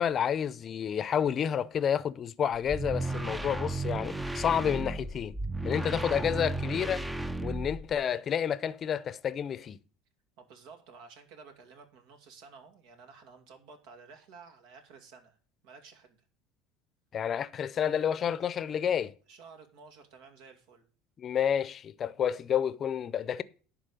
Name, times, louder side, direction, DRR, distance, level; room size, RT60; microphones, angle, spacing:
voice 1, 0.0-5.3 5.6-7.1 7.4-9.8 17.1-19.1 21.2-23.4, left 8 dB, 40° left, 0.7 m, -30 dB
sound 1, 2.5-8.0, right 2 dB, 10° right, 0.6 m, -34 dB
voice 2, 10.4-15.4 15.6-16.2 19.3-20.8, right 5 dB, 75° right, 2.4 m, -53 dB
11.0 x 4.5 x 7.8 m
supercardioid pair, 105°, 0 cm